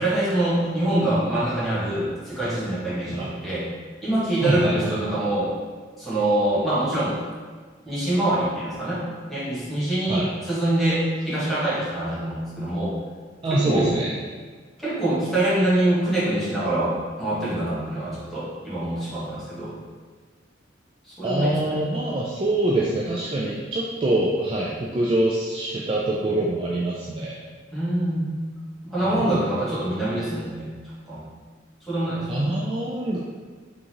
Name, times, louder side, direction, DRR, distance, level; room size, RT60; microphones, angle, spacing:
voice 1, 0.0-3.7 4.0-5.5 6.0-7.2 7.8-13.0 13.5-13.9 14.8-19.8 21.0-21.8 27.7-28.2 28.8-30.7 31.1-31.2 31.9-32.4, right 1 dB, ahead, -11 dB, 1.4 m, -25 dB
voice 2, 4.4-4.9 10.1-10.3 13.4-14.2 21.2-27.4 29.0-29.4 32.3-33.2, right 1 dB, 30° right, -4 dB, 0.3 m, -24 dB
3.8 x 3.7 x 2.9 m, 1.5 s
head